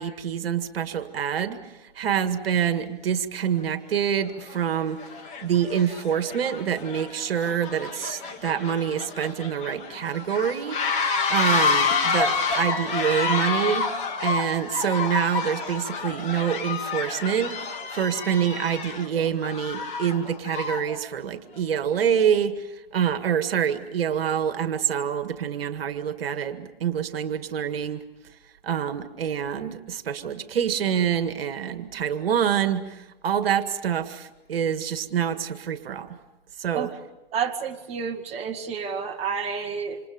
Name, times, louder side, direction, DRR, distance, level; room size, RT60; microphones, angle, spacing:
voice 1, 0.0-5.0 5.4-13.9 14.2-22.7 22.9-28.0 28.6-36.2 36.6-36.9, right 8 dB, 70° right, 9 dB, 1.9 m, -26 dB
sound 1, 3.6-3.7 4.4-4.6 5.0-21.0, left 4 dB, 25° left, 2.6 m, -28 dB
voice 2, 37.3-40.0, right 6 dB, 20° right, 2 dB, 1.8 m, -30 dB
28.0 x 27.5 x 5.2 m, 1.0 s
hypercardioid pair, 140°, 30 cm